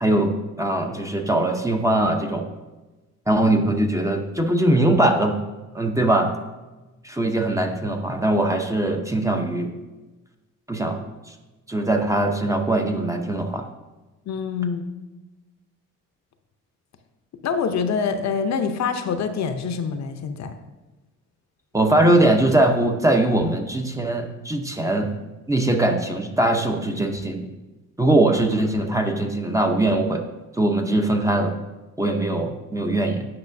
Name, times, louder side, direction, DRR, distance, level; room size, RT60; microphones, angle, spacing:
voice 1, 0.0-2.5 3.3-5.4 5.7-6.4 7.0-9.7 10.7-11.0 11.3-11.4 11.7-13.7 21.7-25.2 25.5-27.5 28.0-30.2 30.5-31.6 32.0-33.2, right 1 dB, 10° right, 4 dB, 0.7 m, -21 dB
voice 2, 14.3-15.0 17.4-20.6, left 6 dB, 60° left, 7 dB, 0.7 m, -25 dB
8.7 x 5.5 x 2.6 m, 1.1 s
cardioid pair, 80°, 31 cm